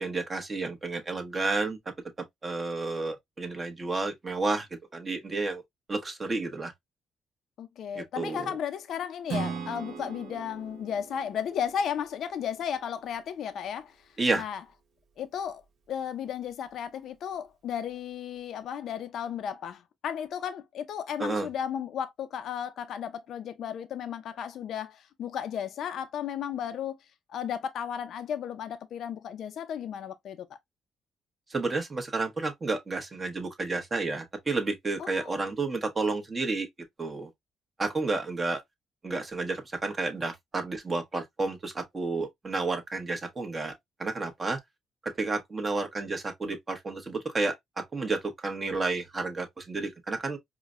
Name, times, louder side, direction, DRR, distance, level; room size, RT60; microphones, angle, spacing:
voice 1, 0.0-1.8 2.4-4.7 4.9-5.6 5.9-6.7 7.9-8.6 14.2-14.4 21.2-21.5 31.5-36.7 37.0-37.3 37.8-38.6 39.0-43.7 44.0-44.6 45.0-50.4, right 3 dB, 30° right, 1.0 m, -31 dB
voice 2, 7.6-14.0 14.3-14.6 15.2-15.6 15.9-27.0 27.3-30.5 35.0-35.4, left 8 dB, 70° left, 0.5 m, -34 dB
Acoustic guitar / Strum, 9.3-12.9, right 5 dB, 70° right, 1.0 m, -38 dB
4.8 x 2.1 x 2.4 m
cardioid pair, 90°, 0 cm